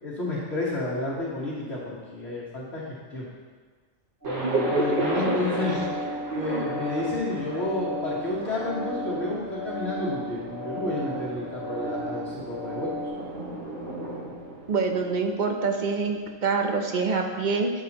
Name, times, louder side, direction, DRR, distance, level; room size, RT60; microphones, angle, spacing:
voice 1, 0.0-3.3 4.2-12.9, left 2 dB, 55° left, -7 dB, 1.6 m, -31 dB
sound 1, 4.2-13.1, equal, 15° right, 2.8 m, -35 dB
Thunder, 4.2-16.0, right 2 dB, 75° right, 2.2 m, -36 dB
voice 2, 4.4-5.4 5.7-5.8 6.3-6.6 14.7-17.7, right 4 dB, 45° right, 3 dB, 0.8 m, -26 dB
12.5 x 5.6 x 2.9 m, 1.5 s
omnidirectional pair, 1.4 m